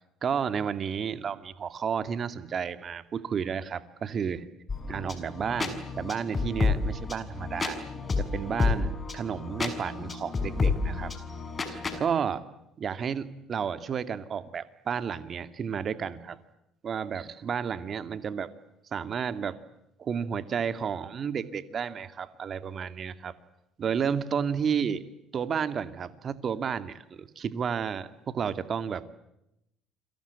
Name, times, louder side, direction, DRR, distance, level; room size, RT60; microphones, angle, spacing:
voice 1, 0.2-4.5 4.9-7.8 8.2-11.1 11.7-12.4 12.8-16.4 16.8-18.5 18.9-19.6 20.0-23.3 23.8-25.0 25.3-29.0, right 7 dB, 45° right, 11 dB, 2.3 m, -32 dB
sound 1, 4.7-12.0, left 4 dB, 30° left, 6.4 m, -30 dB
29.5 x 24.0 x 8.3 m, 0.84 s
hypercardioid pair, 60°, 0 cm